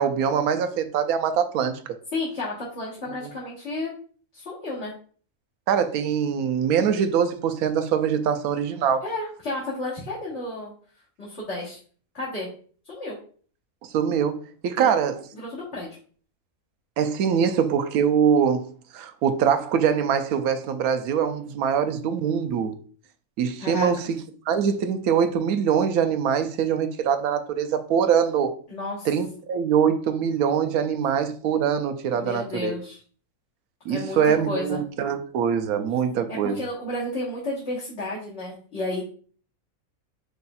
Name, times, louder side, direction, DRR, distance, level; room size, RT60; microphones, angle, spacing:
voice 1, 0.0-1.8 5.7-9.0 13.9-15.2 17.0-22.7 23.4-28.5 29.0-32.8 33.9-36.6, right 7 dB, 90° right, 1.1 m, -23 dB
voice 2, 2.1-3.9 4.3-4.9 9.0-10.7 11.2-11.8 12.1-12.5 12.8-13.1 14.8-14.9 15.3-15.9 23.6-23.9 28.7-29.1 32.1-33.0 33.9-34.8 36.3-39.0, left 2 dB, 50° left, 1.6 m, -32 dB
5.0 x 4.1 x 2.3 m
omnidirectional pair, 1.5 m